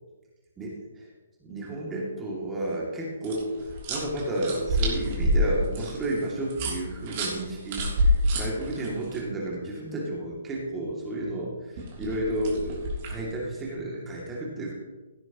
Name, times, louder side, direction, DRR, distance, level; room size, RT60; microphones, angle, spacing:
voice 1, 0.6-1.1 1.4-14.7, right 1 dB, 15° right, -4 dB, 2.6 m, -32 dB
sound 1, 3.2-9.2 11.8-13.2, equal, 35° right, 3.1 m, -28 dB
16.5 x 9.3 x 3.1 m, 1.2 s
figure-of-eight pair, 125°, 0 cm